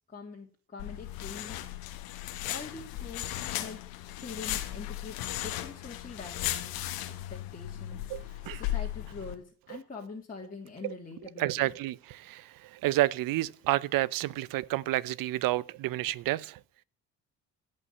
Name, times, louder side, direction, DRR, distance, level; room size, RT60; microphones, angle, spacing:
voice 1, 0.1-1.6 2.5-3.8 4.1-11.8, left 4 dB, 25° left, 2.8 m, -45 dB
sound 1, 0.8-9.3, left 14 dB, 85° left, 1.4 m, -36 dB
voice 2, 11.4-16.6, right 16 dB, 70° right, 0.8 m, -30 dB
16.5 x 5.5 x 8.4 m
supercardioid pair, 70°, 35 cm